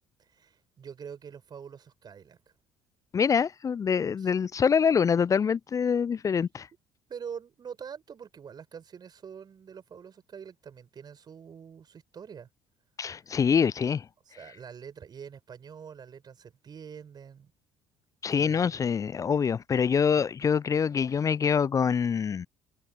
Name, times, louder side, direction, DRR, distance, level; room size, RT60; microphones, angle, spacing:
voice 1, 0.2-2.4 4.2-4.3 7.1-12.5 14.3-17.5 18.4-18.8, right 7 dB, 40° right, 6.3 m, -45 dB
voice 2, 3.1-6.7 13.0-14.1 18.2-22.5, left 6 dB, 30° left, 0.6 m, -25 dB
figure-of-eight pair, 55°, 11 cm